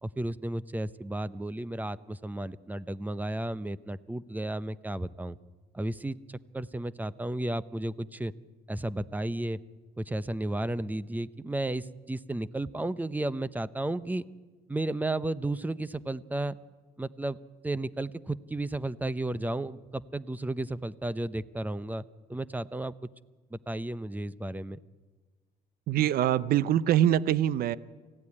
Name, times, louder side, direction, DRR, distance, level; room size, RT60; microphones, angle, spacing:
voice 1, 0.0-5.4 5.7-6.2 6.5-8.3 8.7-9.6 10.0-14.2 14.7-16.6 17.0-17.4 17.6-22.9 23.5-24.8, right 1 dB, 10° right, 17 dB, 0.7 m, -33 dB
voice 2, 25.9-27.8, right 11 dB, 60° right, 18 dB, 0.7 m, -24 dB
25.0 x 15.5 x 9.8 m, 1.4 s
cardioid pair, 110°, 17 cm